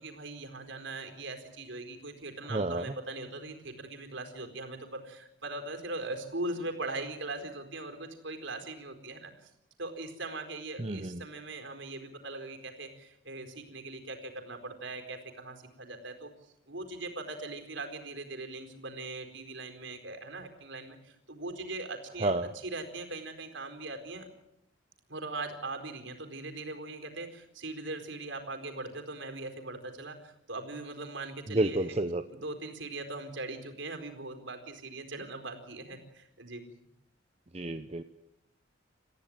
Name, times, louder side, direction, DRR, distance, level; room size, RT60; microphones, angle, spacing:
voice 1, 0.0-9.5 9.8-16.3 16.7-22.3 22.7-24.3 25.1-32.0 32.3-36.6, right 2 dB, 60° right, 6 dB, 4.4 m, -40 dB
voice 2, 2.4-2.9 10.8-11.2 22.2-22.5 31.5-32.3 37.5-38.0, right 2 dB, 30° right, 8 dB, 0.9 m, -30 dB
29.0 x 15.0 x 9.3 m, 0.81 s
head